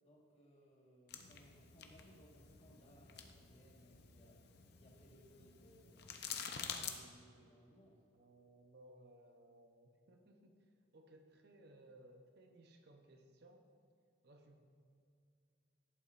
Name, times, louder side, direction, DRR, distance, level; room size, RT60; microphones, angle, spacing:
voice 1, 0.0-4.4 4.7-8.0, equal, 35° left, -3 dB, 1.5 m, -65 dB
sound 1, 1.1-6.9, left 7 dB, 60° left, 0.6 m, -49 dB
voice 2, 8.1-13.7 14.2-14.6, right 1 dB, 60° right, 4 dB, 0.7 m, -62 dB
11.0 x 8.5 x 2.5 m, 2.4 s
head